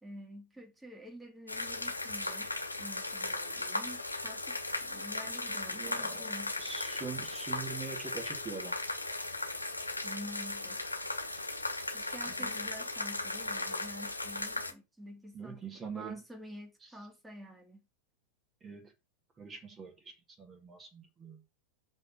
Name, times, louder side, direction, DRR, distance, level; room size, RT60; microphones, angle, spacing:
voice 1, 0.0-2.5 2.8-6.5 10.0-10.8 11.9-15.6 15.9-17.9, equal, 5° right, 2.4 m, -48 dB
sound 1, 1.5-14.7, left 2 dB, 85° left, 1.3 m, -37 dB
voice 2, 5.7-8.7 12.3-12.5 15.3-16.2 18.6-18.9 19.4-21.4, right 5 dB, 20° right, 2.4 m, -44 dB
6.5 x 5.7 x 6.2 m
figure-of-eight pair, 90°, 0 cm